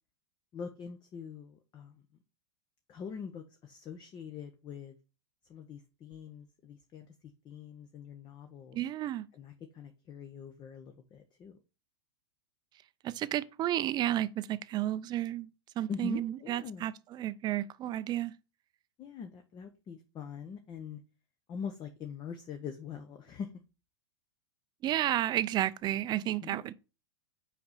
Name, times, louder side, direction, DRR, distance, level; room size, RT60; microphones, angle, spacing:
voice 1, 0.5-2.0 2.9-5.0 5.5-7.1 7.4-8.8 9.3-11.6 15.9-16.9 19.0-21.0 21.5-23.5 26.4-26.6, left 7 dB, 30° left, 0.8 m, -43 dB
voice 2, 8.7-9.3 13.0-15.5 15.8-18.3 24.8-26.7, right 13 dB, 30° right, 0.5 m, -32 dB
5.8 x 5.0 x 4.0 m
hypercardioid pair, 100°, 14 cm